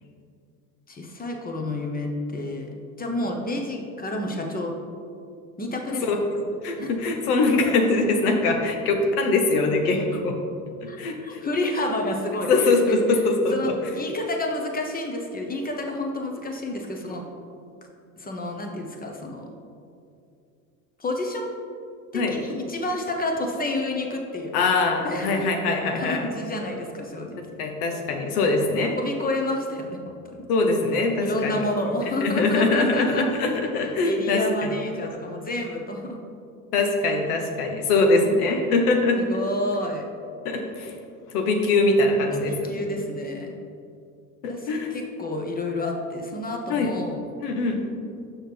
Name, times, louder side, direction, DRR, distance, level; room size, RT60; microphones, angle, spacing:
voice 1, 0.9-2.7 3.0-4.7 5.6-6.1 6.8-6.9 10.9-13.2 13.5-17.2 18.2-19.5 21.0-21.5 22.1-24.5 25.0-25.5 25.9-27.4 29.0-30.4 31.2-33.2 34.0-36.2 39.1-40.0 42.3-43.5 44.5-47.2, left 1 dB, 20° left, 2 dB, 1.0 m, -30 dB
voice 2, 6.6-10.4 10.8-11.4 12.5-13.7 22.1-22.3 24.5-26.2 27.6-28.9 30.5-31.7 32.2-34.7 36.7-39.2 40.4-40.9 41.3-42.8 44.4-44.9 46.7-46.9 47.4-47.8, left 3 dB, 75° left, 4 dB, 1.0 m, -22 dB
6.3 x 6.1 x 3.4 m, 2.5 s
hypercardioid pair, 75°, 46 cm